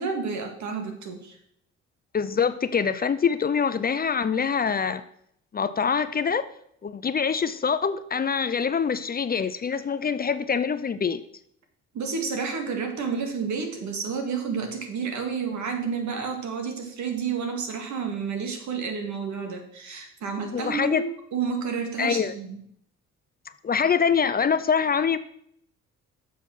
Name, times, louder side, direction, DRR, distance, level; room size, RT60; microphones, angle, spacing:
voice 1, 0.0-1.4 11.9-22.6, right 5 dB, 70° right, 4 dB, 1.9 m, -30 dB
voice 2, 2.1-5.0 5.5-6.5 6.8-11.2 20.5-21.0 22.0-22.3 23.6-25.2, left 6 dB, 30° left, 13 dB, 0.5 m, -24 dB
7.0 x 6.4 x 6.0 m, 0.68 s
cardioid pair, 90°, 30 cm